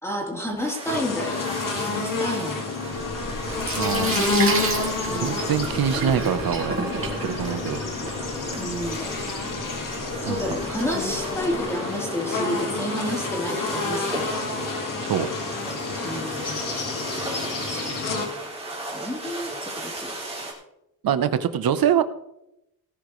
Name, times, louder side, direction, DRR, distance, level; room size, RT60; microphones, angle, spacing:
voice 1, 0.0-1.5 1.8-2.6 5.0-5.4 8.5-9.1 10.2-14.3 16.0-16.7 17.6-18.5 18.9-20.1, equal, 5° left, -3 dB, 3.6 m, -31 dB
sound 1, 0.6-20.5, right 2 dB, 15° right, 3.4 m, -37 dB
sound 2, 0.9-18.3, left 3 dB, 60° left, 2.4 m, -29 dB
Sink (filling or washing), 2.8-11.6, right 3 dB, 35° right, 3.2 m, -32 dB
voice 2, 3.7-4.3 5.1-6.8 7.2-7.8 10.2-10.4 15.0-15.3 21.0-22.0, right 9 dB, 75° right, 12 dB, 1.0 m, -24 dB
18.5 x 10.5 x 3.2 m, 0.85 s
wide cardioid pair, 160°, 36 cm